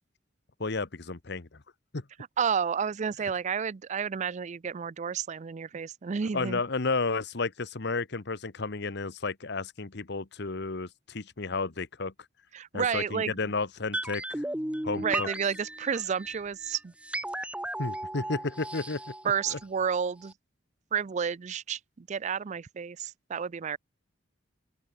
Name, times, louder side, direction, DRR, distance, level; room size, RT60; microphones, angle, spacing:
voice 1, 0.6-1.6 1.9-2.0 6.3-12.1 12.7-14.4 14.8-15.3 17.8-19.0 19.5-19.6, left 3 dB, 65° left, 1.2 m, -32 dB
voice 2, 2.4-6.6 12.5-13.3 15.0-16.9 19.2-20.3 20.9-23.8, right 7 dB, 40° right, 0.4 m, -31 dB
sound 1, 13.9-20.0 20.2-20.3, right 1 dB, 5° right, 1.0 m, -36 dB
open air
head